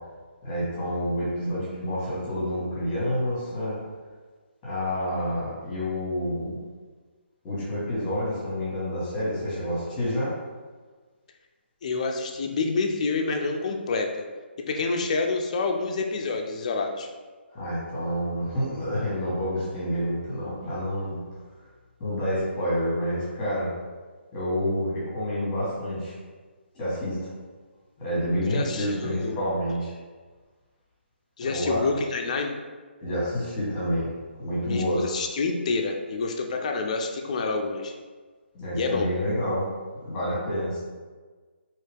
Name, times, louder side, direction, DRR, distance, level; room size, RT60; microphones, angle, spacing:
voice 1, 0.4-3.8 4.6-6.6 7.4-10.3 17.5-21.2 22.0-23.7 24.3-26.1 26.7-27.2 28.0-29.9 31.4-31.8 33.0-34.1 34.4-35.0 38.5-39.7 40.0-40.8, equal, 15° left, -9 dB, 1.3 m, -28 dB
voice 2, 11.8-14.3 14.7-17.1 28.5-29.4 31.4-32.6 34.6-37.9 38.8-39.1, left 4 dB, 35° left, 3 dB, 0.4 m, -28 dB
2.9 x 2.7 x 3.4 m, 1.4 s
hypercardioid pair, 165°, 6 cm